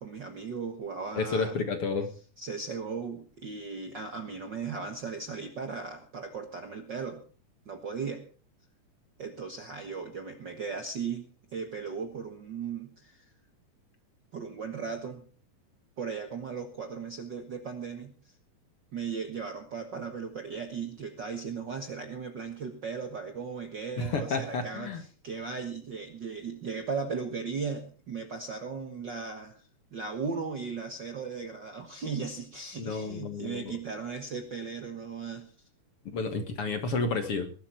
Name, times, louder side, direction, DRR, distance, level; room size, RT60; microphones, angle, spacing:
voice 1, 0.0-1.5 2.4-7.2 7.7-8.2 9.2-13.2 14.3-15.2 16.0-18.1 18.9-24.9 25.2-35.5, right 5 dB, 50° right, 6 dB, 1.4 m, -37 dB
voice 2, 1.2-2.1 24.0-25.0 32.8-33.7 36.1-37.5, left 4 dB, 50° left, 7 dB, 2.1 m, -31 dB
20.5 x 12.0 x 4.4 m, 0.37 s
omnidirectional pair, 3.7 m